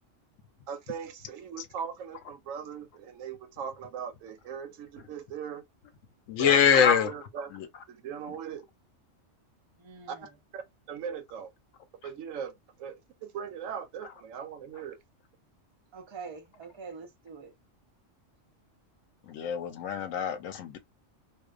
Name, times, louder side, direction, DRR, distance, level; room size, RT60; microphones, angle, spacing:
voice 1, 0.7-5.7 6.4-7.5 7.9-8.7 10.1-10.6 10.9-11.5 12.0-15.0, right 7 dB, 90° right, 1.0 m, -39 dB
voice 2, 6.3-7.1 7.5-7.7 19.3-20.8, left 7 dB, 80° left, 1.0 m, -24 dB
voice 3, 9.8-10.3 15.9-17.5, right 5 dB, 40° right, 0.4 m, -44 dB
2.5 x 2.2 x 2.3 m
omnidirectional pair, 1.3 m